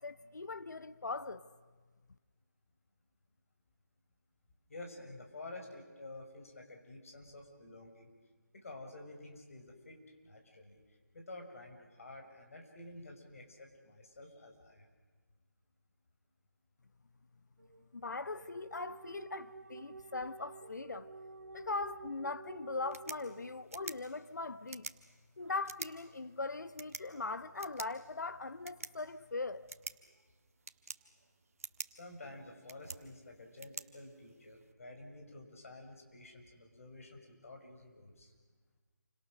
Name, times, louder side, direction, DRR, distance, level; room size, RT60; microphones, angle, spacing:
voice 1, 0.0-1.4 17.9-21.1 21.5-24.9 25.4-29.6, left 3 dB, 75° left, 1.0 m, -40 dB
voice 2, 4.7-8.1 8.5-10.8 11.1-14.9 32.0-38.3, left 2 dB, 50° left, 5.8 m, -50 dB
sound 1, 17.6-23.9, right 3 dB, 65° right, 2.4 m, -51 dB
sound 2, 22.7-34.7, right 4 dB, 50° right, 1.5 m, -50 dB
29.0 x 26.0 x 6.5 m
figure-of-eight pair, 165°, 10 cm